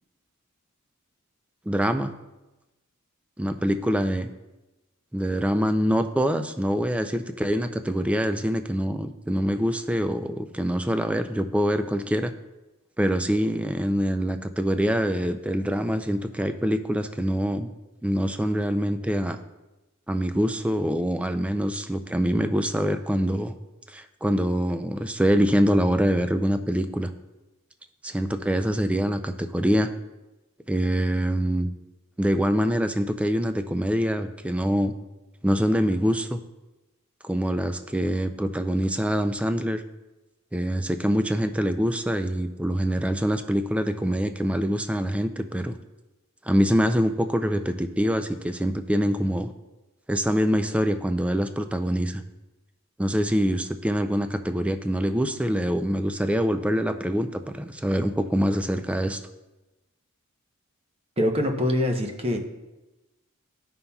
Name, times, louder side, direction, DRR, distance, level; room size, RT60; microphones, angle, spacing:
voice 1, 1.7-2.1 3.4-4.3 5.1-12.3 13.0-17.7 18.0-19.4 20.1-23.5 23.9-27.1 28.0-29.9 30.7-31.7 32.2-34.9 35.4-36.4 37.2-39.8 40.5-45.8 46.4-49.5 50.1-52.2 53.0-59.2, equal, 5° right, 8 dB, 0.3 m, -25 dB
voice 2, 61.2-62.4, left 1 dB, 25° right, 2 dB, 0.8 m, -24 dB
12.5 x 5.5 x 2.3 m, 1.1 s
head